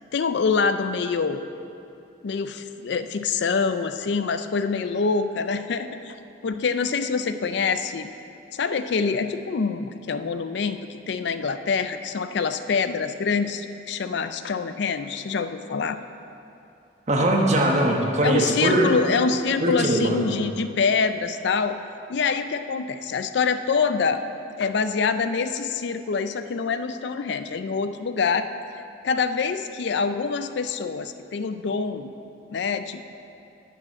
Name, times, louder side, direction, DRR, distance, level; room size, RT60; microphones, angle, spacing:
voice 1, 0.1-1.5 2.2-6.1 6.4-8.1 8.5-16.0 18.2-21.8 22.1-24.2 24.6-28.5 29.0-32.1 32.5-33.0, left 5 dB, 65° left, 10 dB, 0.4 m, -25 dB
voice 2, 17.1-19.0 19.6-20.2, right 1 dB, 40° right, 0 dB, 1.2 m, -21 dB
9.0 x 6.4 x 7.3 m, 2.7 s
head